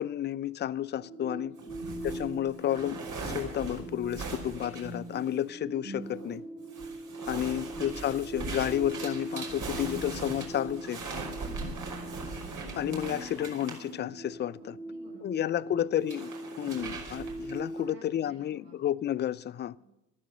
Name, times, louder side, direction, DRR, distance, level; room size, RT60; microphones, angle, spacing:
voice 1, 0.0-1.6 2.0-6.4 7.3-11.1 12.8-14.8 15.2-19.7, left 11 dB, 25° left, 0.5 m, -31 dB
sound 1, 0.9-17.9, right 1 dB, 65° right, 5.9 m, -41 dB
voice 2, 1.5-1.9 14.6-15.8 17.7-18.8 19.8-19.9, right 1 dB, 85° right, 6.2 m, -56 dB
sound 2, 1.6-5.5 6.0-6.4 6.7-13.9 16.0-17.7, right 4 dB, 40° right, 5.5 m, -40 dB
15.0 x 13.0 x 6.4 m
hypercardioid pair, 70°, 48 cm